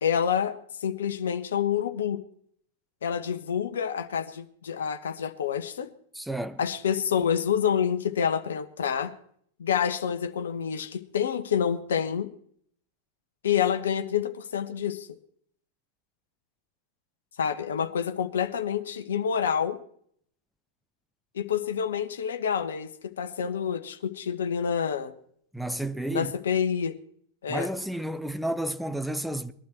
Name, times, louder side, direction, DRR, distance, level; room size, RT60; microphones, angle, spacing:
voice 1, 0.0-2.2 3.0-5.9 6.6-9.1 9.6-12.3 13.4-15.1 17.4-19.8 21.3-22.9 23.2-25.1 26.1-26.9 27.4-27.7, left 8 dB, 65° left, 1.3 m, -28 dB
voice 2, 6.1-6.6 25.5-26.3 27.5-29.5, right 1 dB, ahead, 0.9 m, -31 dB
20.0 x 12.0 x 4.5 m
figure-of-eight pair, 90°, 0 cm